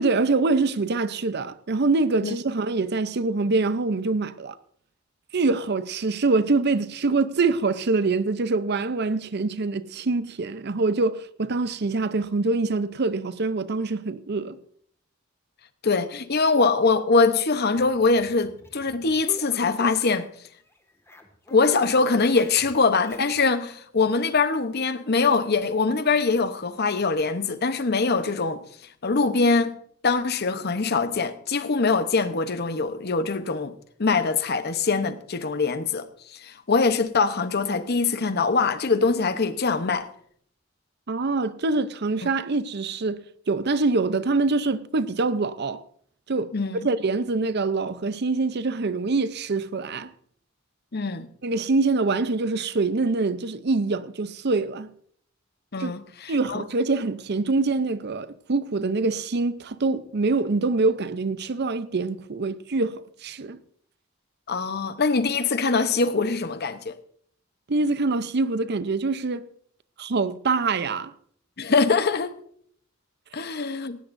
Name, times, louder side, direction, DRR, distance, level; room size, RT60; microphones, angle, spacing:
voice 1, 0.0-4.5 5.3-14.6 41.1-45.8 46.3-50.1 51.4-54.9 55.8-55.9 56.3-63.6 67.7-69.5 70.0-71.1, right 3 dB, 55° right, 0.7 m, -25 dB
voice 2, 15.8-20.3 21.5-28.6 29.0-29.8 30.0-33.7 34.0-36.1 36.3-40.1 46.5-46.9 50.9-51.3 55.7-56.6 64.5-67.0 71.6-72.3 73.3-74.0, left 4 dB, 55° left, 0.9 m, -23 dB
sound 1, 17.7-20.4 20.7-23.4, left 1 dB, 15° left, 1.8 m, -46 dB
18.5 x 16.5 x 2.6 m
head